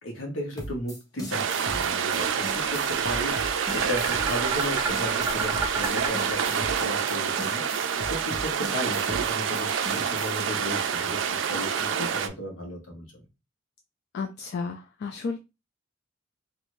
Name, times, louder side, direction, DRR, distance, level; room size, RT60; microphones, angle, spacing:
voice 1, 0.0-13.2, left 1 dB, 75° left, 1 dB, 1.0 m, -35 dB
sound 1, 0.6-10.4, equal, 20° left, 1.0 m, -39 dB
sound 2, 1.3-12.3, right 7 dB, 65° right, 0.4 m, -27 dB
sound 3, 2.1-7.0, right 3 dB, 15° right, 0.6 m, -33 dB
voice 2, 12.0-12.3 14.1-15.4, left 4 dB, 55° left, 5 dB, 0.3 m, -33 dB
2.5 x 2.5 x 3.0 m, 0.26 s
head